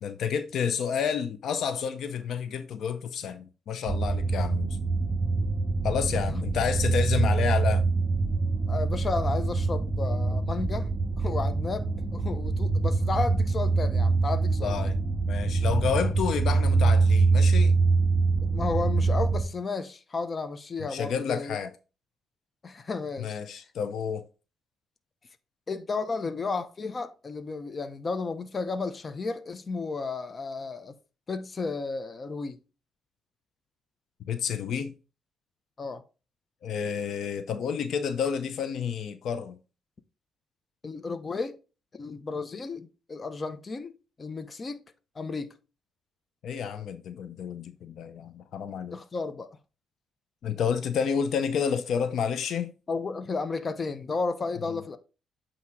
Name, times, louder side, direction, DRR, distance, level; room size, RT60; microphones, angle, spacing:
voice 1, 0.0-4.8 5.8-7.8 14.6-14.9 15.2-17.8 20.8-21.7 23.2-24.2 34.2-34.9 36.6-39.6 46.4-49.0 50.4-52.7 54.7-54.8, left 7 dB, 70° left, 0.6 m, -30 dB
sound 1, 3.9-19.4, right 3 dB, 25° right, 2.7 m, -25 dB
voice 2, 8.7-10.9 11.2-14.8 18.4-21.6 22.6-23.4 25.7-30.9 31.3-32.6 35.8-36.0 40.8-41.6 42.0-43.9 44.2-44.8 45.2-45.5 48.9-49.5 52.9-55.0, left 4 dB, 35° left, 0.7 m, -33 dB
8.4 x 2.9 x 4.6 m
cardioid pair, 90°, 0 cm